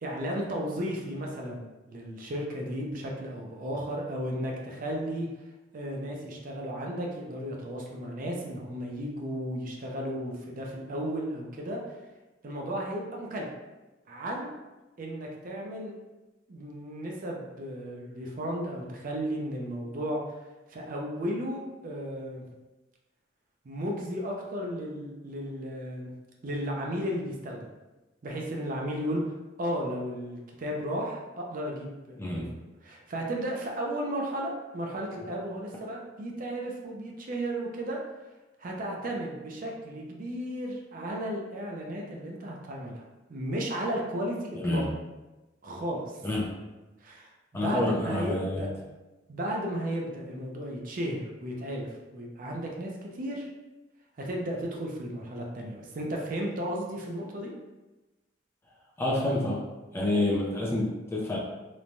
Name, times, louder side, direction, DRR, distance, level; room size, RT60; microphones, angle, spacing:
voice 1, 0.0-5.3 5.7-11.8 12.4-13.5 14.1-14.5 15.0-15.9 16.5-20.4 20.7-22.4 23.6-26.1 26.4-27.7 28.2-32.5 32.8-38.0 38.6-44.8 45.6-46.3 47.0-48.7 49.3-53.5 54.2-57.5, equal, 45° right, -1 dB, 0.4 m, -34 dB
voice 2, 32.2-32.5 44.5-44.9 46.2-46.5 47.5-48.7 59.0-59.6 59.9-61.4, left 1 dB, 15° left, -3 dB, 0.4 m, -28 dB
3.0 x 2.1 x 2.6 m, 1.1 s
head